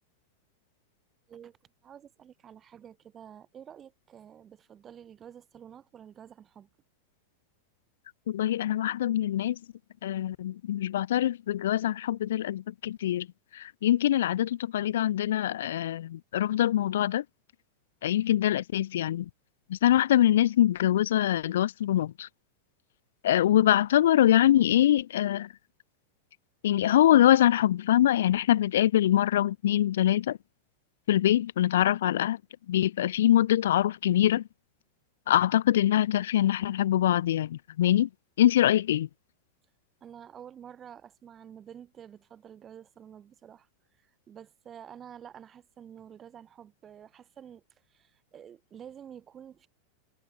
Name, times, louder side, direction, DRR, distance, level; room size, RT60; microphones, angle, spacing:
voice 1, 1.8-6.7 40.0-43.7 44.0-47.6 47.9-49.7, right 9 dB, 25° right, 6.2 m, -49 dB
voice 2, 8.3-9.6 10.0-13.3 13.5-17.2 18.0-19.3 19.7-22.3 23.2-25.5 26.6-30.4 31.1-32.4 32.7-34.4 35.3-38.1 38.4-39.1, left 12 dB, 60° left, 0.8 m, -24 dB
figure-of-eight pair, 90°, 0 cm